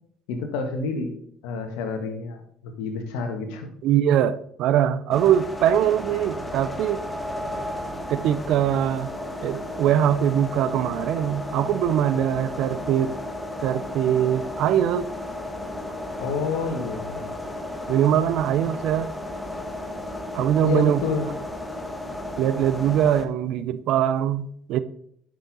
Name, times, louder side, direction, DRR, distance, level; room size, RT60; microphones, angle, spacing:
voice 1, 0.3-1.1 1.4-3.7 16.2-17.3 20.6-21.3, left 4 dB, 70° left, 5 dB, 1.6 m, -29 dB
voice 2, 3.8-7.0 8.1-9.1 9.4-13.2 13.6-15.1 17.9-19.1 20.3-21.0 22.4-24.8, right 10 dB, 60° right, 14 dB, 0.6 m, -22 dB
sound 1, 5.1-23.3, left 1 dB, 15° left, 1.4 m, -34 dB
10.0 x 6.6 x 4.0 m, 0.69 s
hypercardioid pair, 55°, 0 cm